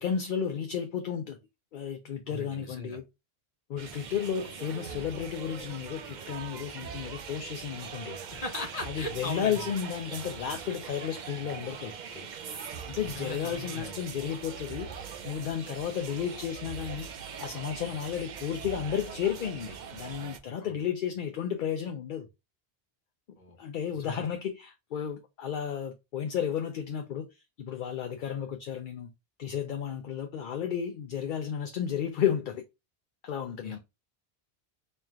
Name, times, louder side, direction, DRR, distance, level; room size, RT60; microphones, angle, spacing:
voice 1, 0.0-1.4 1.7-3.0 3.7-8.2 8.9-12.3 12.9-17.1 17.4-22.3 23.6-29.1 29.4-32.6 33.2-33.8, left 8 dB, 60° left, 0.6 m, -33 dB
voice 2, 2.3-3.0 8.3-9.7 13.0-14.0 20.6-20.7 23.4-23.6 24.0-24.2 33.6-33.8, left 1 dB, 40° left, 1.0 m, -39 dB
sound 1, 3.8-20.4, right 6 dB, 55° right, 0.6 m, -42 dB
3.2 x 2.4 x 4.2 m
omnidirectional pair, 1.0 m